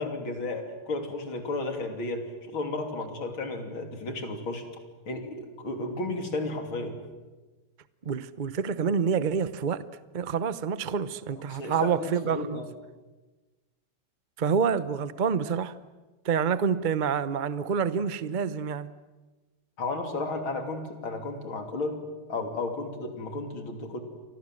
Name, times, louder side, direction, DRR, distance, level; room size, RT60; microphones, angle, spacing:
voice 1, 0.0-4.6 5.1-7.0 11.5-12.7 19.8-22.0 22.3-24.0, left 2 dB, 70° left, 3.9 m, -33 dB
voice 2, 8.0-9.9 10.1-12.6 14.4-15.8 16.2-18.9, right 6 dB, 70° right, 0.4 m, -27 dB
29.5 x 24.0 x 7.7 m
omnidirectional pair, 2.3 m